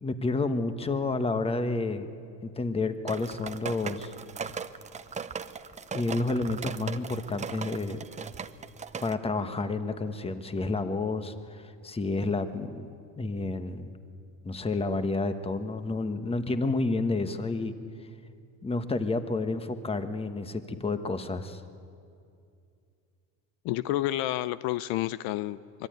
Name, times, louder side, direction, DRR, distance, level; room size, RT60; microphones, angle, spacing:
voice 1, 0.0-2.1 2.4-4.1 5.9-8.0 9.0-13.9 14.4-17.7 18.6-21.6, left 3 dB, 15° left, 9 dB, 1.3 m, -30 dB
sound 1, 3.1-9.1, right 6 dB, 20° right, 0.7 m, -38 dB
voice 2, 23.6-25.9, left 15 dB, 65° left, 16 dB, 0.7 m, -30 dB
25.5 x 22.5 x 9.4 m, 2.4 s
cardioid pair, 130°, 39 cm